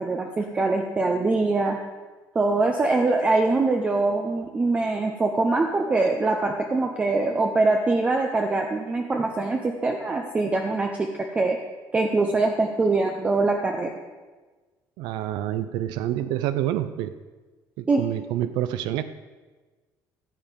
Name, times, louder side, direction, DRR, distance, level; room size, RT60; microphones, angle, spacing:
voice 1, 0.0-1.8 2.3-11.1 11.3-11.6 11.9-13.9 17.9-18.0, right 3 dB, 15° right, 3 dB, 0.7 m, -23 dB
voice 2, 15.0-17.2 17.8-19.0, right 12 dB, 80° right, 12 dB, 0.5 m, -27 dB
14.5 x 7.8 x 5.2 m, 1.3 s
cardioid pair, 155°, 7 cm